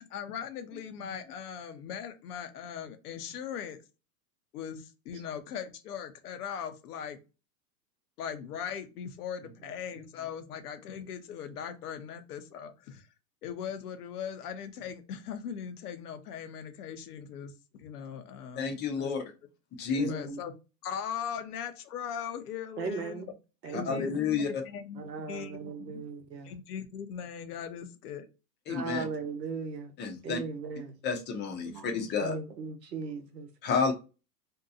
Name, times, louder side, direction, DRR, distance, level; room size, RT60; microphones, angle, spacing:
voice 1, 0.1-3.8 4.5-7.2 8.2-13.1 13.4-19.1 20.1-20.5 20.8-23.2 23.6-26.0 26.4-28.2, left 8 dB, 70° left, 0.7 m, -39 dB
voice 2, 18.6-19.2 19.8-20.1 23.7-24.5 28.7-29.0 30.0-30.4 31.0-32.4 33.6-33.9, left 5 dB, 25° left, 0.5 m, -30 dB
voice 3, 20.0-20.4 22.8-23.3 23.6-24.2 25.0-26.5 28.7-29.9 30.2-30.9 31.7-33.5, right 4 dB, 90° right, 0.9 m, -38 dB
2.7 x 2.2 x 2.5 m
hypercardioid pair, 105°, 48 cm